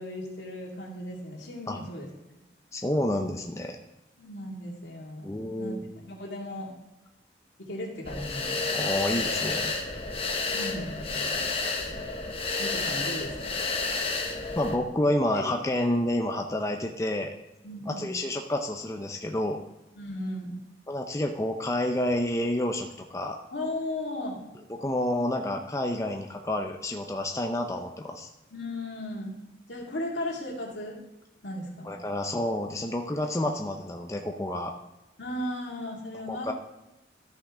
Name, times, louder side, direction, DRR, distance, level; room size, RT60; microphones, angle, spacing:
voice 1, 0.0-2.1 4.2-5.3 5.6-5.8 6.0-6.7 7.6-8.6 10.5-11.4 12.6-13.6 15.3-15.4 17.6-18.1 20.0-20.6 23.5-24.4 28.5-29.3 29.7-31.0 31.4-31.9 35.2-36.5, left 1 dB, 85° left, -2 dB, 2.4 m, -36 dB
voice 2, 2.7-3.8 5.2-5.8 8.7-9.7 14.6-17.3 17.9-19.6 20.9-23.4 24.8-28.3 31.8-34.7 36.3-36.5, left 1 dB, 15° left, 3 dB, 0.5 m, -29 dB
sound 1, 8.0-14.8, left 3 dB, 30° left, 1.0 m, -30 dB
13.0 x 5.8 x 3.7 m, 0.95 s
head